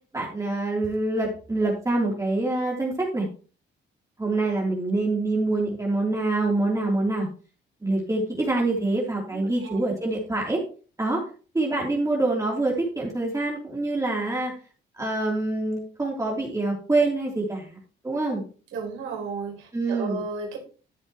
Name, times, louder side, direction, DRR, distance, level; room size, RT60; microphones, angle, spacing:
voice 1, 0.1-3.3 4.2-7.3 7.8-10.6 11.0-11.2 11.5-14.5 15.0-17.8 18.0-18.4 19.7-20.2, right 2 dB, 15° right, -3 dB, 3.2 m, -25 dB
voice 2, 9.3-9.8 18.7-20.6, right 4 dB, 85° right, 1 dB, 3.9 m, -34 dB
13.5 x 7.5 x 3.0 m, 0.38 s
cardioid pair, 90°, 20 cm